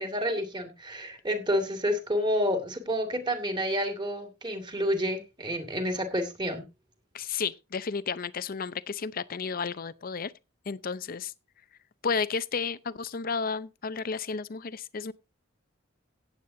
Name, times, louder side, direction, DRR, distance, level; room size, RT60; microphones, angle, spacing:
voice 1, 0.0-6.6, equal, 25° right, 2.3 m, -29 dB
voice 2, 7.1-10.3 10.7-11.3 12.0-15.1, left 5 dB, 45° left, 0.6 m, -32 dB
17.0 x 8.3 x 2.7 m
head